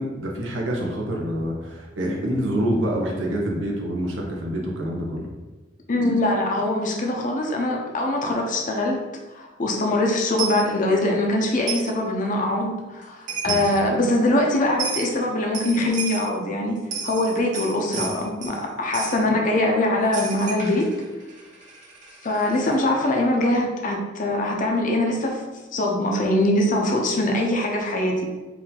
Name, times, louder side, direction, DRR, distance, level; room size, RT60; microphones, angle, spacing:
voice 1, 0.0-5.3 13.4-13.6, equal, 85° right, -1 dB, 0.8 m, -26 dB
voice 2, 5.9-9.0 9.3-16.8 17.0-20.9 22.2-25.4 25.7-28.2, left 1 dB, 45° left, 1 dB, 0.7 m, -23 dB
Coin (dropping), 10.4-10.6 11.7-11.9 13.0-13.1 13.3-13.8 14.8-15.1 15.5-16.3 16.8-18.6 18.9-19.2 20.1-22.8, right 6 dB, 45° right, 1.0 m, -32 dB
4.6 x 2.7 x 3.7 m, 1.2 s
head